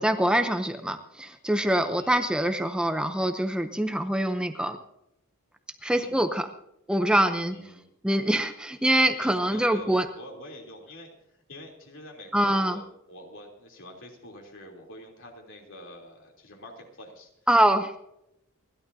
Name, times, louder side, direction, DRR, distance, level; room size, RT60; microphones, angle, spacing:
voice 1, 0.0-4.8 5.8-6.5 6.9-7.6 8.0-10.1 12.3-12.8 17.5-17.9, right 1 dB, 5° right, 6 dB, 0.6 m, -24 dB
voice 2, 5.8-6.2 7.5-7.8 9.2-11.1 11.5-12.8 13.1-17.3, left 1 dB, 60° left, 1 dB, 3.3 m, -46 dB
29.0 x 11.5 x 2.7 m, 0.81 s
head